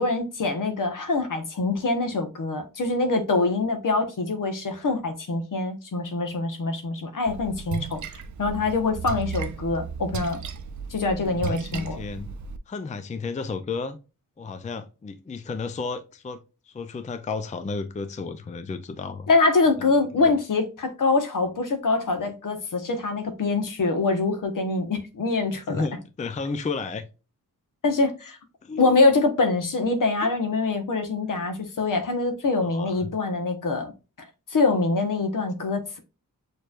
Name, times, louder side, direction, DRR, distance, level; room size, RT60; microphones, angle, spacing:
voice 1, 0.0-8.0 8.4-10.4 10.9-12.0 19.3-25.8 27.8-28.4 28.8-33.9 34.5-36.0, left 3 dB, 65° left, 1.1 m, -24 dB
Splash splatter, 7.3-12.6, right 6 dB, 60° right, 0.6 m, -35 dB
voice 2, 11.2-12.3 12.7-14.0 14.4-16.4 16.7-19.3 19.9-20.3 25.7-27.0 28.6-29.0 30.2-30.3 32.6-33.1, left 4 dB, 20° left, 0.4 m, -33 dB
6.5 x 3.2 x 2.4 m
wide cardioid pair, 145°, 34 cm